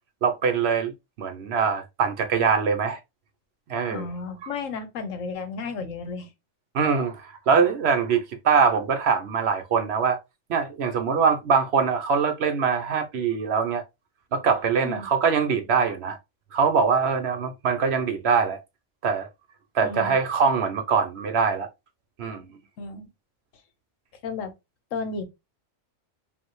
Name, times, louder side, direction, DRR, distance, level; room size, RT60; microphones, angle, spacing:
voice 1, 0.2-0.9 1.2-3.0 3.7-4.1 4.4-4.5 6.7-10.2 10.5-13.8 14.3-16.2 16.5-18.6 19.0-19.3 19.7-21.7 22.2-22.4, right 6 dB, 60° right, 0.8 m, -23 dB
voice 2, 3.9-6.3 14.8-15.1 19.8-20.1 22.8-23.1 24.2-24.5 24.9-25.2, left 4 dB, 75° left, 1.2 m, -33 dB
5.2 x 2.7 x 3.0 m
omnidirectional pair, 1.4 m